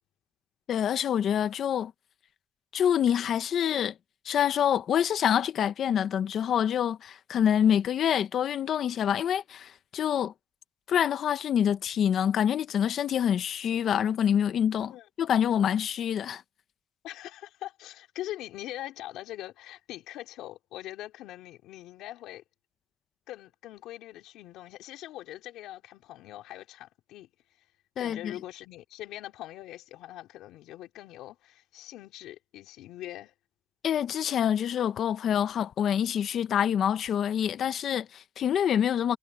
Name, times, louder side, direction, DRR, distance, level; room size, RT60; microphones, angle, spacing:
voice 1, 0.7-1.9 2.7-3.9 4.2-10.3 10.9-14.9 15.2-16.4 28.0-28.3 33.8-39.2, left 9 dB, 65° left, 1.2 m, -26 dB
voice 2, 17.0-22.4 23.3-27.3 28.0-33.3, left 14 dB, 85° left, 3.7 m, -42 dB
cardioid pair, 80°, 0 cm